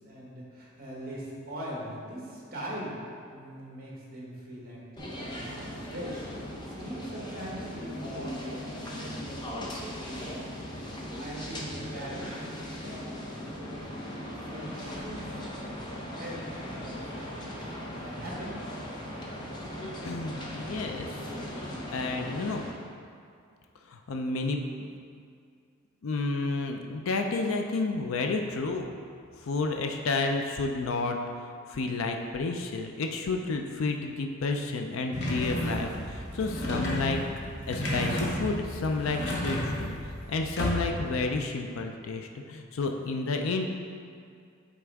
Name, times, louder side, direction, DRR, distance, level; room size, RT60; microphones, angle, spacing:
voice 1, 0.0-3.0 3.3-6.3 6.8-8.4 8.7-13.2 13.5-13.8 14.2-15.7 16.1-17.7 18.0-18.6, equal, 45° right, -4 dB, 1.5 m, -42 dB
sound 1, 5.0-22.7, equal, 20° left, 0.7 m, -38 dB
voice 2, 20.0-21.1 21.7-22.7 23.9-24.6 26.0-29.0 29.4-31.2 31.7-37.2 37.7-39.9 40.3-43.8, left 3 dB, 75° left, 3 dB, 0.4 m, -31 dB
sound 2, 35.1-41.1, equal, 55° left, 1.0 m, -32 dB
8.3 x 3.6 x 3.5 m, 2.3 s
head